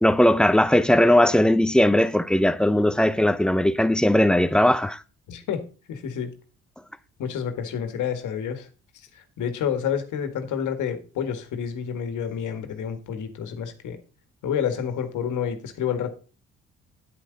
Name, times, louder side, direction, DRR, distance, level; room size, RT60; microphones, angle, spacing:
voice 1, 0.0-5.0, left 1 dB, 5° left, 0.6 m, -19 dB
voice 2, 5.3-5.6 5.9-6.3 7.2-8.7 9.1-14.0 14.4-16.1, left 8 dB, 80° left, 1.8 m, -29 dB
9.7 x 9.0 x 3.9 m
cardioid pair, 90°, 30 cm